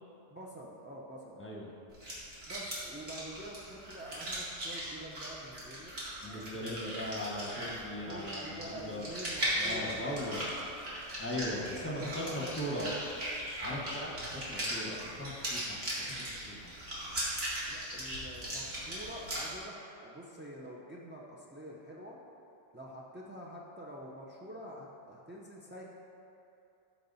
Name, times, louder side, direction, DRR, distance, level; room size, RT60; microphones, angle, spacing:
voice 1, 0.3-1.4 2.5-5.9 6.3-6.8 7.6-7.7 8.1-10.5 11.5-11.6 12.0-12.8 13.8-14.0 17.7-22.2 22.7-25.8, right 1 dB, 20° right, -4 dB, 0.3 m, -47 dB
voice 2, 1.4-1.7 6.2-9.1 9.5-10.4 11.2-13.0 13.6-16.7, left 1 dB, 10° left, -3 dB, 1.1 m, -39 dB
sound 1, 1.9-19.4, right 1 dB, 55° right, 2.1 m, -39 dB
13.5 x 4.6 x 4.0 m, 2.8 s
omnidirectional pair, 1.3 m